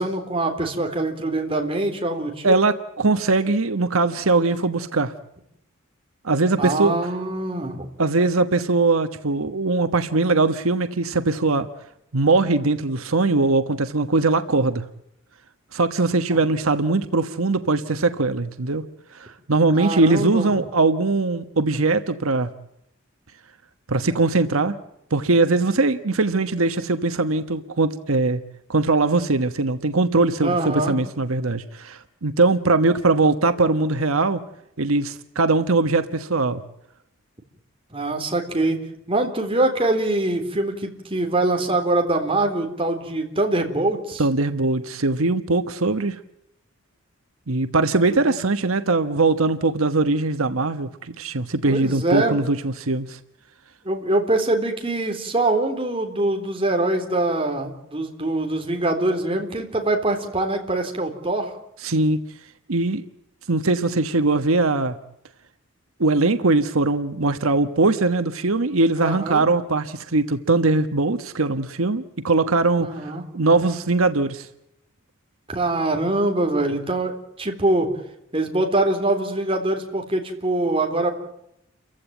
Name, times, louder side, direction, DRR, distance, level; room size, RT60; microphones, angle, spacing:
voice 1, 0.0-2.6 6.6-7.9 16.3-16.4 19.7-20.5 30.4-31.0 37.9-38.8 39.1-44.2 48.2-48.4 51.7-52.4 53.9-61.5 69.0-69.5 72.8-73.2 75.5-77.9 78.3-81.1, right 2 dB, 25° right, 3 dB, 3.6 m, -23 dB
voice 2, 2.4-5.1 6.2-7.0 8.0-11.7 12.1-14.8 15.7-18.8 19.1-22.5 23.9-24.7 25.1-28.4 28.7-34.4 34.8-36.6 44.2-46.2 47.5-53.2 61.8-62.2 62.7-63.0 63.5-65.0 66.0-74.5, right 3 dB, 85° right, 10 dB, 1.3 m, -21 dB
29.5 x 15.5 x 9.0 m, 0.80 s
head